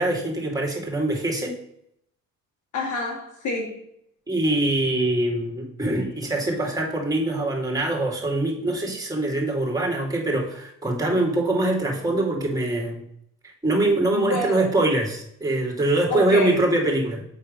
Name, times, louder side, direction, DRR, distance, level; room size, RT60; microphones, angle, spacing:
voice 1, 0.0-1.6 4.3-13.0 13.6-17.2, right 2 dB, 10° right, 0 dB, 2.5 m, -23 dB
voice 2, 2.7-3.8 14.1-14.6 16.1-16.6, left 2 dB, 75° left, 0 dB, 2.5 m, -27 dB
8.0 x 4.3 x 5.3 m, 0.73 s
cardioid pair, 90°, 30 cm